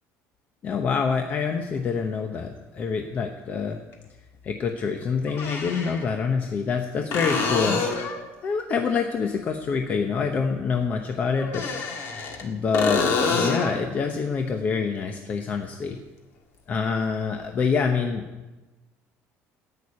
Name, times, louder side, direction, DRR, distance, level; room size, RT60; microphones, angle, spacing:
voice 1, 0.6-3.8 4.4-7.8 8.4-11.7 12.4-16.0 16.7-18.3, left 5 dB, 30° left, 5 dB, 0.8 m, -26 dB
sound 1, 1.8-1.9 3.9-4.0 5.3-6.1 7.1-8.2 11.4-12.4 12.7-13.8 17.4-17.5, left 4 dB, 50° left, 1.9 m, -26 dB
11.0 x 8.6 x 9.8 m, 1.2 s
cardioid pair, 180°, 5 cm